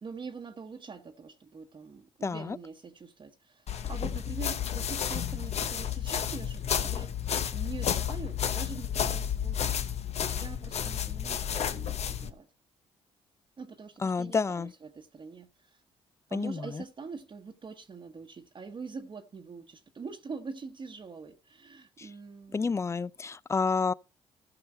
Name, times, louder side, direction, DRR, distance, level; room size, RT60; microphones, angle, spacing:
voice 1, 0.0-7.1 7.5-12.5 13.6-15.8 16.3-22.7, right 5 dB, 40° right, 1.1 m, -44 dB
voice 2, 2.2-2.6 14.0-14.7 16.3-16.8 22.0-22.1 22.5-23.9, left 4 dB, 20° left, 0.4 m, -29 dB
sound 1, 3.7-12.3, left 9 dB, 55° left, 0.9 m, -31 dB
15.0 x 5.5 x 4.4 m
supercardioid pair, 65°, 13 cm